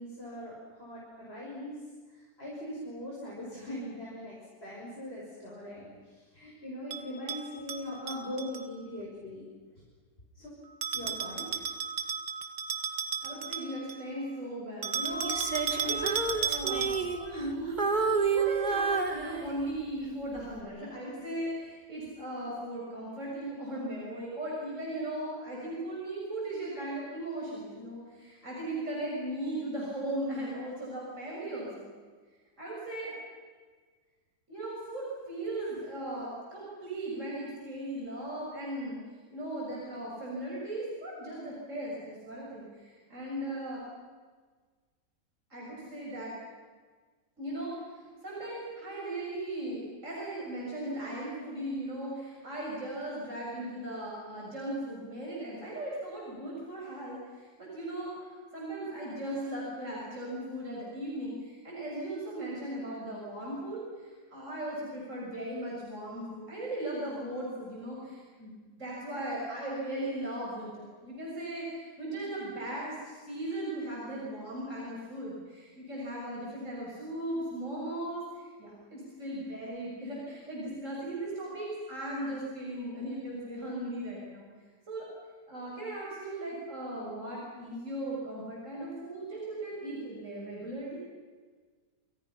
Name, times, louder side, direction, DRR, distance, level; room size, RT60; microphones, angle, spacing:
voice 1, 0.0-1.8 2.1-4.4 4.6-9.4 9.8-9.9 10.3-10.5 10.9-11.8, left 1 dB, 35° left, -5 dB, 7.1 m, -41 dB
Bell, 6.9-8.6 10.8-14.1 14.8-17.2, right 6 dB, 85° right, 2.3 m, -34 dB
voice 2, 13.2-31.9 32.6-33.1 34.5-39.0 39.3-43.8 45.5-46.3 47.4-47.7 48.2-68.5 68.8-84.5 84.9-85.1 85.5-91.0, right 1 dB, 45° right, -5 dB, 7.6 m, -37 dB
Female singing, 15.2-17.5 17.8-19.8 20.4-20.6, right 4 dB, 30° right, 2.1 m, -30 dB
29.0 x 28.0 x 5.9 m, 1.5 s
omnidirectional pair, 1.8 m